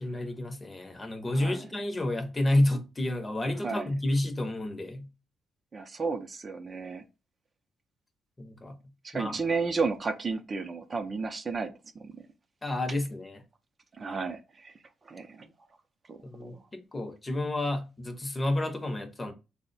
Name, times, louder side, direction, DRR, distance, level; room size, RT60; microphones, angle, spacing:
voice 1, 0.0-5.1 8.4-8.8 9.1-9.4 12.6-13.4 16.2-19.3, left 1 dB, 20° left, 0.6 m, -30 dB
voice 2, 1.3-1.7 3.6-3.9 5.7-7.0 9.0-12.1 14.0-14.7 15.1-15.5 16.1-16.6, right 4 dB, 35° right, 0.4 m, -33 dB
3.5 x 2.0 x 3.9 m
cardioid pair, 105°, 0 cm